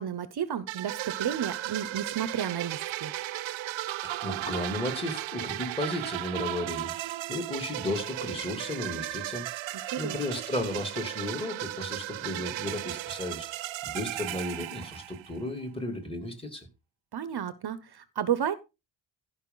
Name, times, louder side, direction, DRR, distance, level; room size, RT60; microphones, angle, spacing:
voice 1, 0.0-3.1 9.9-10.2 17.1-18.5, right 9 dB, 50° right, 0.9 m, -32 dB
sound 1, 0.7-15.4, right 15 dB, 70° right, 0.6 m, -35 dB
voice 2, 4.0-6.9 7.3-16.7, left 1 dB, 10° left, 2.9 m, -34 dB
15.5 x 5.5 x 4.0 m
cardioid pair, 110°, 49 cm